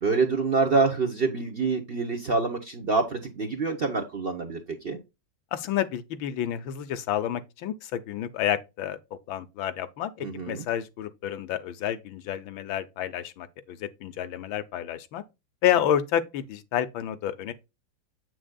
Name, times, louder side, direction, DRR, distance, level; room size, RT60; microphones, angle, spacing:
voice 1, 0.0-4.6 4.8-5.0 10.2-10.6, right 4 dB, 40° right, 0.9 m, -26 dB
voice 2, 5.5-9.0 9.3-15.2 15.6-17.5, left 10 dB, 85° left, 1.6 m, -29 dB
7.9 x 6.3 x 2.2 m
omnidirectional pair, 2.1 m